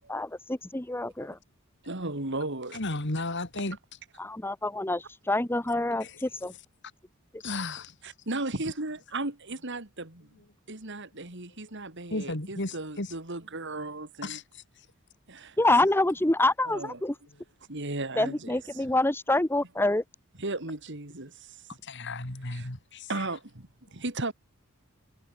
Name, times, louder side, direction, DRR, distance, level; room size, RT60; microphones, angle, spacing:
voice 1, 0.1-1.4 4.2-6.5 15.6-17.1 18.2-20.0, left 2 dB, 10° left, 0.9 m, -26 dB
voice 2, 1.8-2.8 8.0-10.3 10.7-14.4 15.3-15.6 16.6-17.0 17.7-18.8 20.4-21.6 22.5-22.7 23.1-24.3, right 2 dB, 55° right, 3.1 m, -35 dB
voice 3, 2.7-3.8 6.0-6.1 7.4-7.9 12.1-13.1 14.2-14.4 21.8-23.2, left 2 dB, 55° left, 3.0 m, -34 dB
head